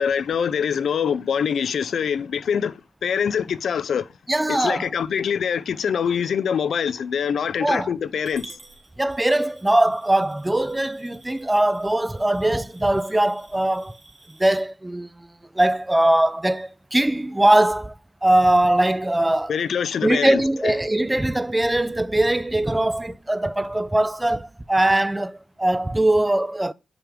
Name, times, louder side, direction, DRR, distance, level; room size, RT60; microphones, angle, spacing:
voice 1, 0.0-4.1 4.5-8.6 19.5-20.8, left 7 dB, 75° left, 0.3 m, -24 dB
voice 2, 4.3-4.9 7.6-7.9 9.0-14.0 14.4-15.3 15.5-17.9 18.2-19.5 20.0-26.7, right 1 dB, 15° right, 0.3 m, -21 dB
Coin (dropping) / Glass, 8.2-14.6, right 2 dB, 45° right, 1.9 m, -49 dB
5.8 x 3.5 x 5.0 m
cardioid pair, 80°, 0 cm